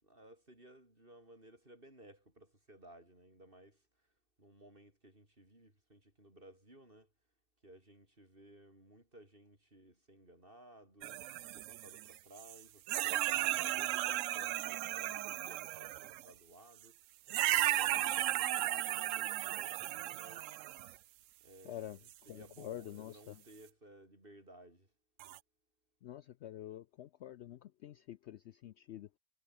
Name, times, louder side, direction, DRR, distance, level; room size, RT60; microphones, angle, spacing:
voice 1, 0.0-3.8 4.4-7.1 7.6-11.2 11.5-17.0 17.8-20.6 21.4-24.9, right 1 dB, 30° right, 7.7 m, -59 dB
sound 1, 11.0-12.6 12.9-16.3 17.3-21.0 22.1-22.2 25.2-25.4, right 14 dB, 70° right, 0.8 m, -35 dB
voice 2, 21.6-22.0 22.3-23.4 26.0-29.1, left 12 dB, 80° left, 0.6 m, -47 dB
omnidirectional pair, 1.7 m